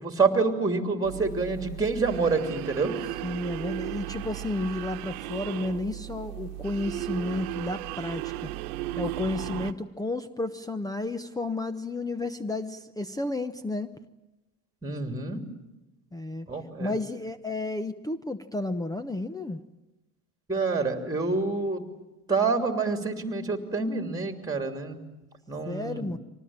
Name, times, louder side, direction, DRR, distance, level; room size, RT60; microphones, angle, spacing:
voice 1, 0.0-3.0 14.8-15.4 16.5-16.9 20.5-21.8 22.3-25.0 25.5-26.2, right 4 dB, 10° right, 7 dB, 3.0 m, -27 dB
sound 1, 1.0-9.7, right 16 dB, 80° right, 1.3 m, -36 dB
voice 2, 3.2-8.5 9.0-13.9 16.1-16.5 16.8-19.6 25.7-26.2, left 2 dB, 10° left, 13 dB, 0.9 m, -32 dB
25.0 x 19.0 x 8.8 m, 1.0 s
supercardioid pair, 95°, 43 cm